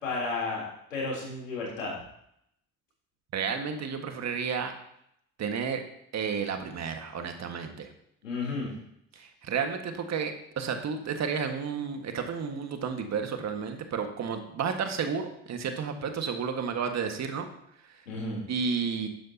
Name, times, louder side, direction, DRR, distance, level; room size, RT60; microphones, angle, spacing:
voice 1, 0.0-0.6 0.9-1.9 8.2-8.7 18.1-18.4, left 3 dB, 90° left, -3 dB, 3.5 m, -32 dB
voice 2, 3.3-4.7 5.4-5.8 6.1-7.9 9.1-17.5 17.8-18.0 18.5-19.1, right 6 dB, 45° right, 5 dB, 1.7 m, -32 dB
12.5 x 9.6 x 2.9 m, 0.74 s
hypercardioid pair, 60°, 38 cm